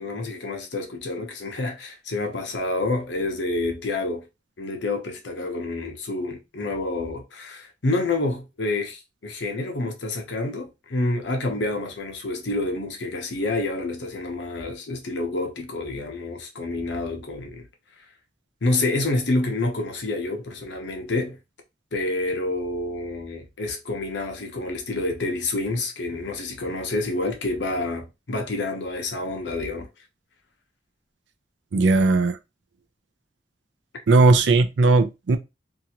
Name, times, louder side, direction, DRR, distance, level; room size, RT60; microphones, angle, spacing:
voice 1, 0.0-4.2 4.6-17.7 18.6-21.4 21.9-29.9, left 2 dB, 80° left, 0.8 m, -28 dB
voice 2, 31.7-32.4 34.1-35.4, right 3 dB, 85° right, 0.4 m, -17 dB
2.8 x 2.5 x 2.8 m
head